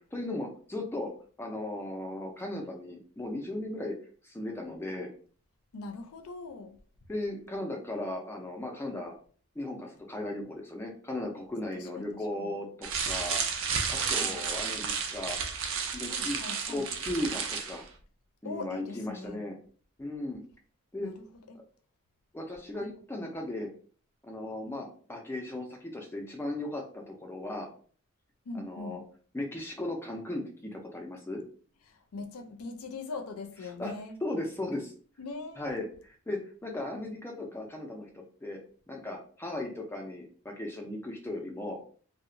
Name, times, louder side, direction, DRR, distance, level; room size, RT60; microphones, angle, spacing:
voice 1, 0.1-1.1 1.4-3.9 4.2-5.1 7.1-9.2 9.6-13.4 13.9-15.4 15.9-17.9 18.4-19.6 20.0-20.4 20.9-21.1 22.3-23.7 24.2-27.7 28.5-29.0 29.3-31.4 33.8-33.9 34.2-34.9 35.6-38.1 38.4-38.6 38.9-41.8, left 1 dB, 10° left, 0.3 m, -36 dB
voice 2, 5.7-6.8 11.7-12.5 14.0-14.4 16.1-16.9 18.4-19.4 21.0-21.6 22.8-22.9 28.5-29.1 31.9-34.2 35.2-35.8, left 3 dB, 85° left, 0.5 m, -41 dB
sound 1, 12.8-17.8, right 6 dB, 60° right, 0.4 m, -32 dB
2.8 x 2.0 x 2.5 m
head